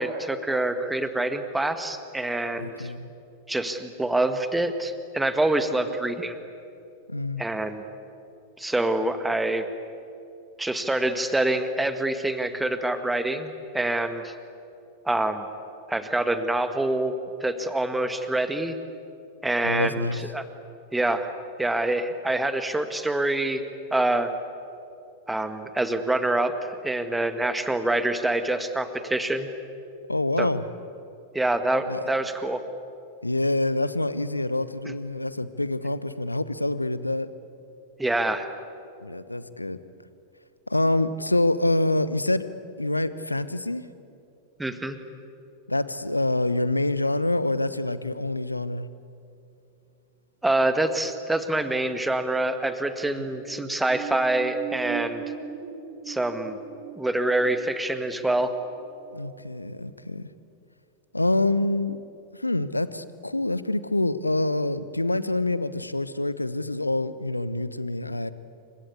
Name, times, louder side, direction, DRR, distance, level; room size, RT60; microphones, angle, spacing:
voice 1, 0.0-2.9 3.5-6.4 7.4-7.8 8.6-9.6 10.6-14.3 15.1-15.5 15.9-17.1 17.4-18.8 19.4-20.4 20.9-21.3 21.6-23.6 23.9-24.3 25.3-29.5 30.4-30.5 31.3-32.6 34.9-35.0 38.0-38.5 44.6-45.0 50.4-55.2 56.1-56.6 56.9-58.5, right 2 dB, 5° right, 9 dB, 1.9 m, -26 dB
voice 2, 2.6-3.1 7.1-7.4 19.6-20.2 30.1-30.6 31.9-32.0 33.2-37.3 39.0-39.8 40.7-42.5 42.8-43.9 45.7-48.9 53.1-53.3 59.1-60.3 61.1-62.0 62.3-68.3, left 2 dB, 85° left, 15 dB, 1.0 m, -26 dB
sound 1, 53.3-59.5 59.9-60.0, right 9 dB, 45° right, 2.9 m, -40 dB
28.5 x 24.5 x 8.5 m, 2.7 s
figure-of-eight pair, 90°, 0 cm